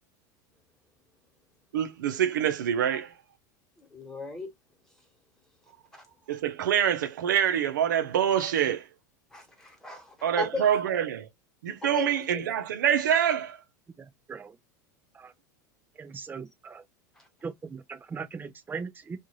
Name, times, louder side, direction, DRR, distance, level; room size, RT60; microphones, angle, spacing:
voice 1, 1.7-3.1 6.3-8.9 10.2-11.3 11.6-13.6, right 9 dB, 80° right, 0.6 m, -26 dB
voice 2, 3.8-4.5 5.9-6.1 9.3-10.8 11.9-12.4 17.1-17.3, left 2 dB, 5° left, 1.4 m, -37 dB
voice 3, 14.0-14.6 15.1-15.3 16.0-16.8 17.4-19.2, right 5 dB, 20° right, 0.5 m, -39 dB
2.5 x 2.4 x 3.0 m
hypercardioid pair, 95°, 10 cm